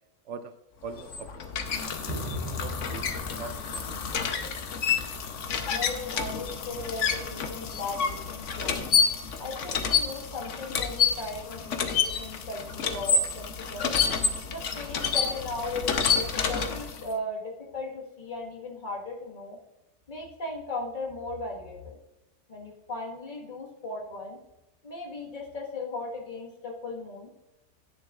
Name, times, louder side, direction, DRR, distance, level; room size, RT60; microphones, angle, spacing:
voice 1, 0.8-1.4 2.5-3.1 3.4-4.3, right 5 dB, 75° right, 9 dB, 0.9 m, -42 dB
sound 1, 0.9-17.1, left 6 dB, 85° left, 1.2 m, -29 dB
sound 2, 2.0-12.6, left 1 dB, 50° right, 2.5 m, -43 dB
voice 2, 5.7-8.8 9.4-13.9 14.5-19.6 20.1-22.0 22.5-24.4 24.8-27.3, left 2 dB, 40° left, -1 dB, 1.7 m, -37 dB
10.5 x 9.5 x 2.4 m, 0.95 s
omnidirectional pair, 1.2 m